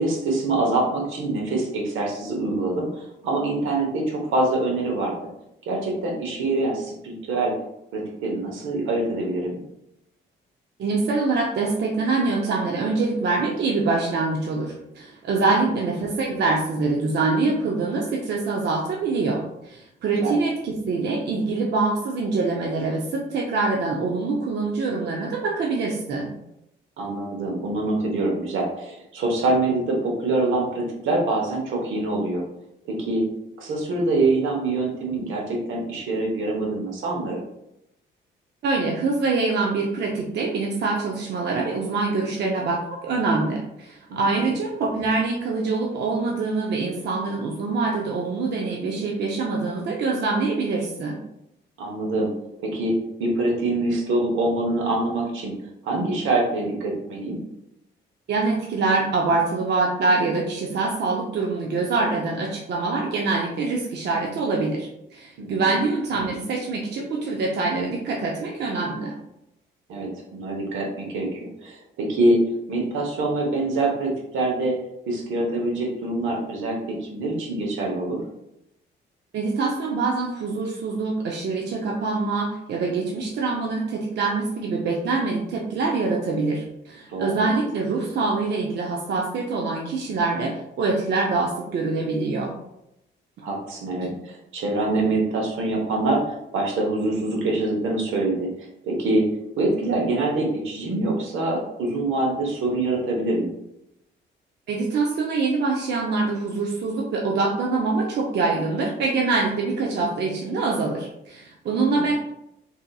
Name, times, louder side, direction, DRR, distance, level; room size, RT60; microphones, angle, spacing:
voice 1, 0.0-5.2 5.7-7.5 7.9-9.6 15.6-15.7 20.1-20.4 27.0-32.4 32.9-33.2 33.6-37.4 44.1-44.5 51.8-52.3 52.6-55.5 55.8-57.4 65.4-65.6 69.9-72.4 72.7-74.8 75.1-78.2 87.1-87.5 93.4-99.3 99.6-103.5 111.9-112.1, right 2 dB, 80° right, -1 dB, 1.0 m, -25 dB
voice 2, 10.8-26.3 38.6-51.2 58.3-69.2 79.3-92.5 104.7-112.2, right 3 dB, 60° right, -1 dB, 0.5 m, -24 dB
3.8 x 2.8 x 2.2 m, 0.82 s
cardioid pair, 90°, 20 cm